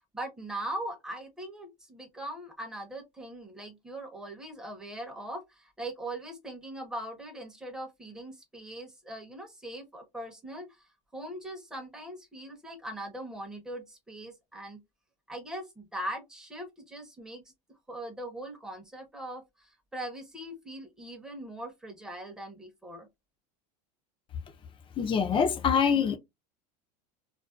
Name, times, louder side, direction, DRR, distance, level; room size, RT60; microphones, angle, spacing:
voice 1, 0.1-10.7 11.1-14.8 15.3-17.4 17.9-23.1, right 1 dB, 5° right, 0.8 m, -40 dB
voice 2, 25.0-26.2, left 6 dB, 25° left, 0.5 m, -24 dB
2.5 x 2.2 x 2.3 m
supercardioid pair, 125°, 20 cm